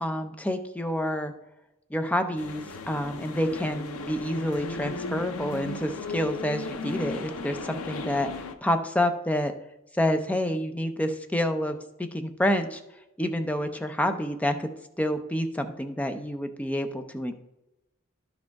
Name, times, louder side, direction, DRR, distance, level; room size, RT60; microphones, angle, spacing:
voice 1, 0.0-1.3 1.9-9.5 10.0-11.8 12.1-12.8 13.2-14.7 15.0-17.3, equal, 5° left, 6 dB, 0.5 m, -28 dB
sound 1, 2.4-8.5, left 3 dB, 90° left, 0.7 m, -36 dB
11.5 x 5.1 x 3.5 m, 0.93 s
head